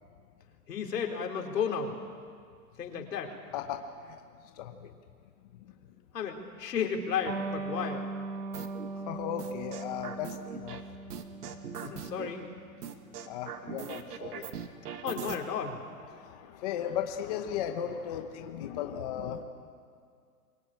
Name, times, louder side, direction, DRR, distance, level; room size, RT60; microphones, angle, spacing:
voice 1, 0.7-1.9 2.8-3.4 6.1-8.0 11.8-12.5 15.0-15.8, left 7 dB, 85° left, 2 dB, 4.3 m, -33 dB
voice 2, 3.5-4.9 5.6-5.8 8.9-10.8 11.1-11.2 12.7-14.9 16.1-19.4, left 9 dB, 25° left, 5 dB, 1.0 m, -37 dB
Electric guitar, 7.3-14.4, right 3 dB, 45° right, 3.3 m, -40 dB
sound 1, 8.5-8.9 9.4-10.8 11.1-12.3 12.8-15.4, right 8 dB, 75° right, 2.3 m, -40 dB
25.5 x 23.0 x 9.0 m, 2.2 s
hypercardioid pair, 175°, 47 cm